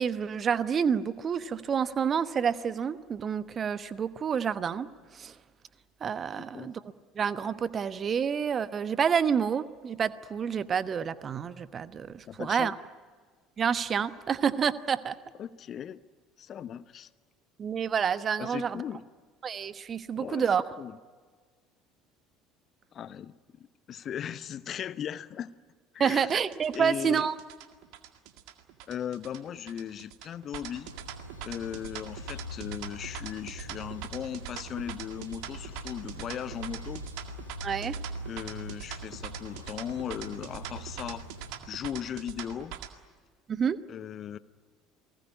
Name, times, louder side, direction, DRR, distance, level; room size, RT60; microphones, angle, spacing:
voice 1, 0.0-4.9 5.1-5.3 6.0-6.8 7.1-12.7 13.6-15.1 17.6-18.8 19.4-20.7 26.0-27.3 37.6-38.0 43.5-43.8, right 7 dB, 35° right, 15 dB, 1.1 m, -28 dB
voice 2, 12.3-12.7 15.4-16.0 16.4-17.1 18.4-19.0 20.1-20.5 20.8-20.9 22.9-25.5 25.9-26.3 26.7-27.3 28.9-30.9 31.4-37.0 38.3-41.2 41.7-42.7 43.9-44.4, left 9 dB, 40° left, 17 dB, 0.9 m, -37 dB
sound 1, 26.2-42.9, right 11 dB, 55° right, 1.9 m, -43 dB
sound 2, 30.8-41.6, equal, 90° right, 2.0 m, -43 dB
29.5 x 19.5 x 9.9 m, 1.5 s
figure-of-eight pair, 60°, 0 cm